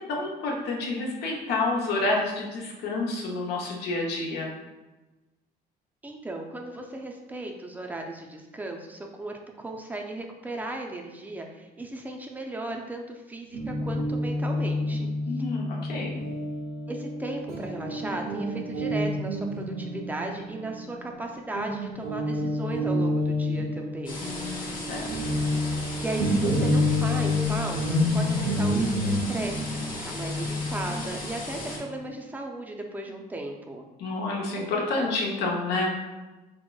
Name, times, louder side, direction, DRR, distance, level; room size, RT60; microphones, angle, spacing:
voice 1, 0.1-4.5 15.3-16.2 24.2-25.0 25.3-25.4 34.0-35.9, left 2 dB, 75° left, -1 dB, 0.7 m, -29 dB
voice 2, 6.0-15.1 15.3-15.4 16.9-24.2 26.0-33.9, right 2 dB, 10° right, 2 dB, 0.4 m, -36 dB
Guitar, 13.5-21.2 21.5-32.0, left 1 dB, 65° right, 0.5 m, -29 dB
sound 1, 24.1-31.8, left 2 dB, 55° left, 1.0 m, -37 dB
4.5 x 2.0 x 2.2 m, 1.1 s
cardioid pair, 110°, 17 cm